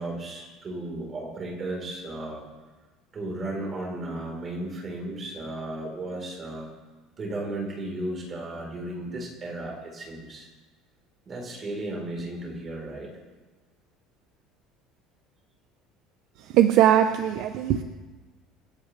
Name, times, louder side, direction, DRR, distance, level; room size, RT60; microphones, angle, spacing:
voice 1, 0.0-2.4 3.1-6.7 7.2-10.5 11.3-13.1, right 1 dB, 25° right, -1 dB, 4.0 m, -34 dB
voice 2, 16.5-17.8, right 11 dB, 50° right, 8 dB, 0.7 m, -20 dB
27.0 x 12.5 x 3.3 m, 1.3 s
cardioid pair, 175°, 0 cm